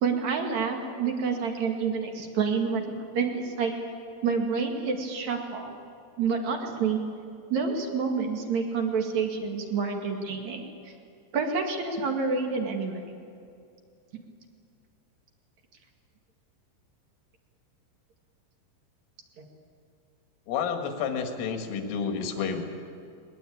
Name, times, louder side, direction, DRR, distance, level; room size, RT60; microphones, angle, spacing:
voice 1, 0.0-2.8 3.1-3.7 4.2-5.8 6.2-7.0 7.5-10.6 11.3-13.0 19.4-19.5, right 5 dB, 50° right, 3 dB, 2.5 m, -28 dB
voice 2, 20.5-22.6, left 6 dB, 80° left, 4 dB, 4.5 m, -30 dB
21.5 x 21.5 x 8.7 m, 2.4 s
omnidirectional pair, 5.7 m